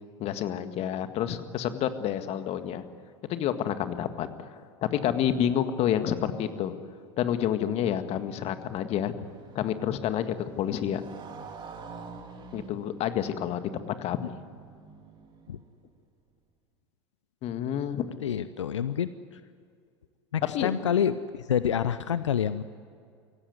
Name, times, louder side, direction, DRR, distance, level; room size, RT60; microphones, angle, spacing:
voice 1, 0.2-2.8 3.3-4.5 4.9-6.8 7.2-9.1 9.6-11.0 12.5-14.2 17.4-18.1 20.5-20.7, left 10 dB, 45° left, 9 dB, 1.8 m, -29 dB
Motorcycle, 7.8-16.0, right 4 dB, 30° right, 3.2 m, -48 dB
voice 2, 18.2-19.4 20.3-22.6, left 8 dB, 80° left, 14 dB, 0.7 m, -28 dB
24.5 x 17.0 x 9.6 m, 2.3 s
hypercardioid pair, 85°, 15 cm